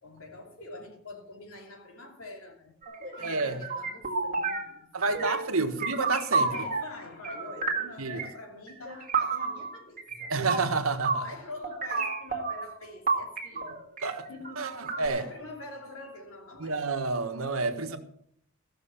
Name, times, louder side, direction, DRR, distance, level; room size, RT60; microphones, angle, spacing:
voice 1, 0.0-5.9 6.5-10.5 11.2-13.8 14.3-16.8 17.7-18.0, left 2 dB, 80° left, 2.9 m, -46 dB
sound 1, 2.8-4.7 5.0-5.5 5.8-6.9 7.2-8.3 8.7-11.3 11.6-12.7 13.1-15.1, right 4 dB, 40° right, 1.9 m, -31 dB
voice 2, 3.2-3.6 4.9-6.6 8.0-8.2 10.3-11.2 14.0-14.3 14.6-15.2 16.6-18.0, right 3 dB, 80° right, 1.4 m, -29 dB
15.0 x 6.3 x 7.1 m
head